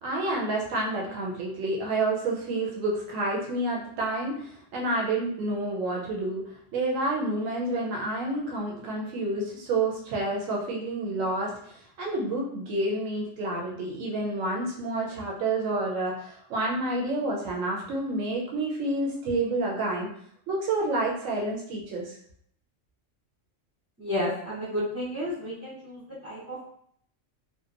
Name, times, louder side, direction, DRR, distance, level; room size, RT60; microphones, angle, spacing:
voice 1, 0.0-20.1 20.5-22.2, right 2 dB, 90° right, -2 dB, 1.0 m, -29 dB
voice 2, 24.0-26.6, left 1 dB, 25° right, -10 dB, 0.3 m, -32 dB
2.8 x 2.1 x 2.4 m, 0.65 s
omnidirectional pair, 1.3 m